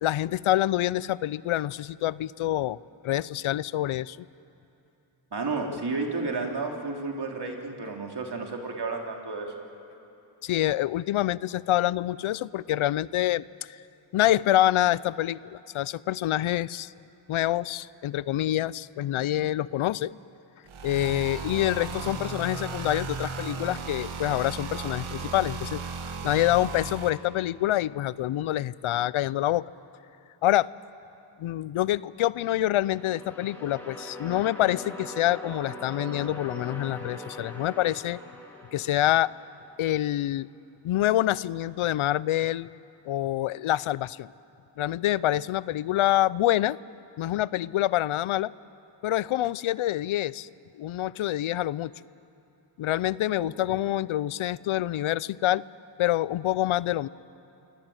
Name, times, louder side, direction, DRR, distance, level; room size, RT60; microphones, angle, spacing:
voice 1, 0.0-2.8 3.0-4.3 10.4-13.8 14.1-16.9 17.3-20.1 20.8-25.8 26.2-29.7 30.4-30.7 31.4-38.2 38.7-39.3 39.8-40.5 40.8-42.7 43.0-44.3 44.8-46.8 47.2-48.5 49.0-50.5 50.7-51.9 52.8-55.6 56.0-57.1, left 14 dB, 90° left, 20 dB, 0.6 m, -26 dB
voice 2, 5.3-9.5 53.4-53.8, right 3 dB, 55° right, 1 dB, 3.9 m, -32 dB
sound 1, 20.7-27.1, right 4 dB, 80° right, 2.1 m, -35 dB
sound 2, 32.7-39.7, left 1 dB, 5° left, 7.6 m, -42 dB
28.5 x 21.5 x 9.0 m, 2.9 s
cardioid pair, 55°, 47 cm